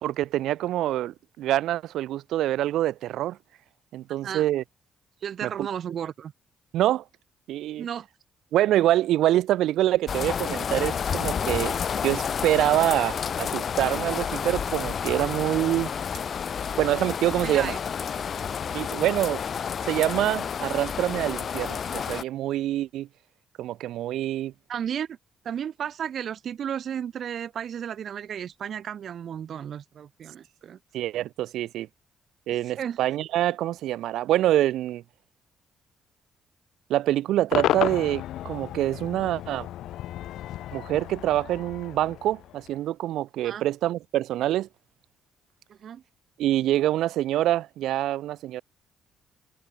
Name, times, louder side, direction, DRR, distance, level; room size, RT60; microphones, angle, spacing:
voice 1, 0.0-3.4 3.9-4.6 5.4-5.5 6.7-7.0 7.5-7.9 8.5-11.8 12.0-15.9 16.8-17.7 18.7-19.4 19.8-23.1 23.6-24.5 30.9-31.9 32.5-35.0 36.9-39.7 40.7-44.7 46.4-48.6, right 13 dB, 85° right, 1.0 m, -25 dB
voice 2, 5.2-6.3 7.8-8.1 17.4-17.8 18.1-18.2 24.7-25.2 25.4-30.8 32.6-33.0 43.4-43.6 45.7-46.0, right 9 dB, 60° right, 1.4 m, -33 dB
sound 1, 10.1-22.2, left 7 dB, 50° left, 2.0 m, -30 dB
Cheering / Crowd / Fireworks, 37.5-42.8, left 13 dB, 80° left, 1.1 m, -32 dB
cardioid pair, 90°, 0 cm